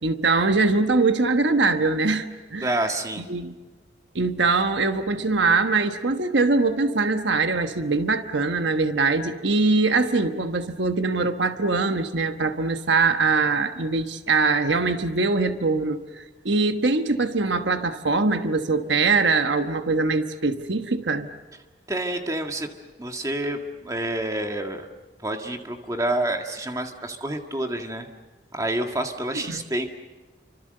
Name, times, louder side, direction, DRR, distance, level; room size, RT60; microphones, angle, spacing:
voice 1, 0.0-2.8 3.2-3.5 4.1-21.3 29.5-29.6, right 3 dB, 75° right, 7 dB, 1.2 m, -22 dB
voice 2, 2.6-3.2 21.9-22.7 23.0-24.9 25.2-28.1 28.5-29.8, right 1 dB, 20° right, 3 dB, 1.9 m, -28 dB
29.5 x 25.0 x 6.7 m, 1.3 s
head